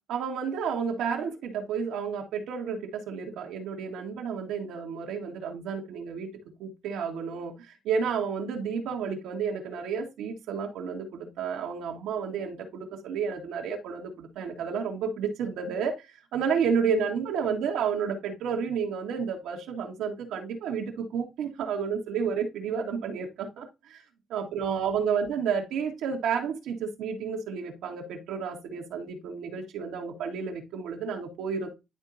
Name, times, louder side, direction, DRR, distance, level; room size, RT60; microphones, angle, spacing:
voice 1, 0.1-6.3 6.6-24.0 24.3-31.7, right 6 dB, 85° right, 1.8 m, -31 dB
11.0 x 3.7 x 2.7 m
cardioid pair, 90°, 0 cm